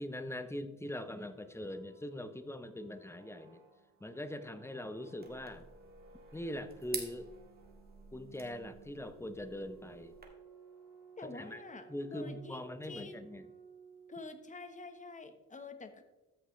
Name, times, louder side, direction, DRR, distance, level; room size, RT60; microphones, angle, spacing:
voice 1, 0.0-3.6 4.0-5.7 6.3-7.3 8.1-10.2 11.2-11.6 11.9-13.5, left 1 dB, 10° left, 10 dB, 0.8 m, -42 dB
sound 1, 0.8-14.6, right 6 dB, 90° right, 1.8 m, -58 dB
sound 2, 5.2-10.2, right 4 dB, 30° right, 1.9 m, -49 dB
voice 2, 11.2-13.2 14.1-16.0, left 3 dB, 25° left, 7 dB, 1.2 m, -47 dB
13.5 x 6.1 x 3.2 m, 1.0 s
cardioid pair, 90°, 30 cm